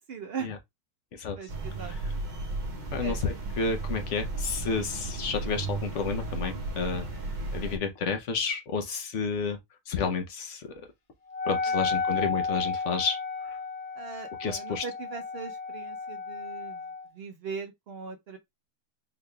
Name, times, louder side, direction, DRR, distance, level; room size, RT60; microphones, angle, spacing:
voice 1, 0.1-0.5 1.4-1.9 3.0-3.2 14.0-16.8 17.1-18.4, right 5 dB, 65° right, 0.6 m, -39 dB
sound 1, 1.5-7.8, right 2 dB, 35° right, 0.8 m, -34 dB
voice 2, 2.9-7.1 7.5-9.6 9.9-10.7 11.4-13.6 14.4-14.8, left 5 dB, 60° left, 0.9 m, -31 dB
Wind instrument woodwind instrument, 11.3-17.1, left 4 dB, 75° left, 0.3 m, -33 dB
3.9 x 3.2 x 2.2 m
omnidirectional pair, 1.7 m